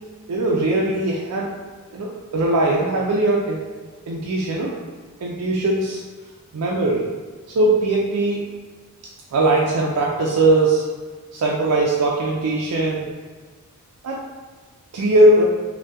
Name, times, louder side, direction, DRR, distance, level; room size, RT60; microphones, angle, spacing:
voice 1, 0.3-1.5 1.9-2.1 2.3-3.6 4.1-4.7 5.2-6.0 6.5-7.1 7.5-8.4 9.3-10.9 11.3-13.1 14.0-14.2 14.9-15.4, right 2 dB, 85° right, -3 dB, 0.4 m, -19 dB
3.3 x 2.2 x 2.7 m, 1.4 s
head